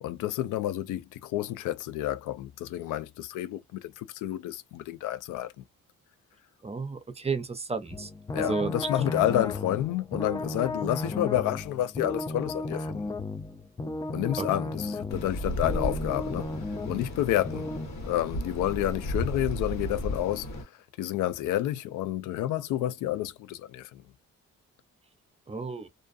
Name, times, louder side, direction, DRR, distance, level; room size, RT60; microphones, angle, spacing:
voice 1, 0.0-5.6 8.3-13.0 14.1-16.5 16.9-17.7 18.0-20.7 21.0-24.0, left 13 dB, 85° left, 0.5 m, -30 dB
voice 2, 6.6-8.1 8.4-8.7 14.4-14.5 25.5-25.9, right 4 dB, 20° right, 0.6 m, -32 dB
sound 1, 7.9-17.9, left 2 dB, 15° left, 0.4 m, -34 dB
sound 2, 15.1-20.6, left 1 dB, 60° left, 1.4 m, -34 dB
2.5 x 2.3 x 2.5 m
cardioid pair, 90°, 30 cm